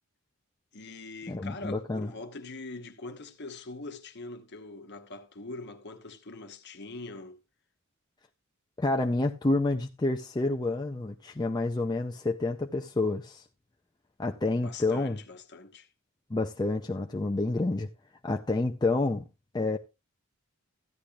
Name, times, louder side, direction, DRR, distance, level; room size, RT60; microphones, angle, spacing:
voice 1, 0.7-7.4 14.6-15.9, left 3 dB, 55° left, 1.1 m, -43 dB
voice 2, 1.3-2.1 8.8-13.4 14.2-15.2 16.3-17.9 18.2-19.2 19.5-19.8, left 2 dB, 20° left, 0.5 m, -28 dB
14.5 x 10.0 x 2.4 m
head